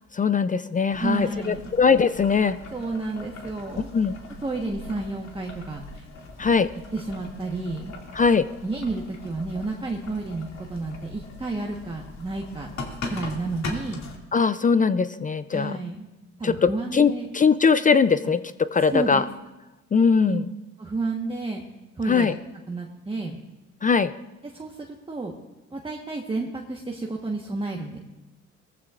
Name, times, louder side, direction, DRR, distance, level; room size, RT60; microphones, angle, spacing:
voice 1, 0.1-2.6 3.9-4.2 6.4-6.7 8.2-8.5 14.3-15.8 16.4-19.2 19.9-20.4 22.1-22.3 23.8-24.1, left 5 dB, 25° left, 13 dB, 0.4 m, -21 dB
Boiling, 0.9-14.2, left 2 dB, 65° left, 2.4 m, -40 dB
voice 2, 1.0-1.6 2.7-3.9 4.4-6.1 6.4-6.6 6.9-7.9 8.6-12.7 13.1-14.0 15.5-16.1 16.4-17.3 18.9-19.2 20.2-20.4 20.8-21.6 22.0-22.4 22.7-23.4 24.4-25.3 25.7-28.0, right 3 dB, 15° right, 0 dB, 1.2 m, -31 dB
19.0 x 14.5 x 2.5 m, 1.1 s
cardioid pair, 90°, 30 cm